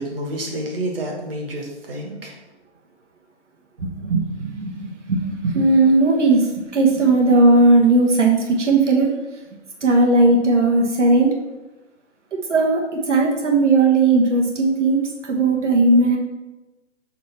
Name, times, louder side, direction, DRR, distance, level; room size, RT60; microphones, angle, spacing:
voice 1, 0.0-2.4, right 1 dB, 55° right, 0 dB, 1.6 m, -29 dB
voice 2, 3.8-9.1 9.8-11.3 12.5-16.2, right 2 dB, 85° right, 0 dB, 1.3 m, -17 dB
6.6 x 3.2 x 5.8 m, 1.1 s
hypercardioid pair, 175°, 35 cm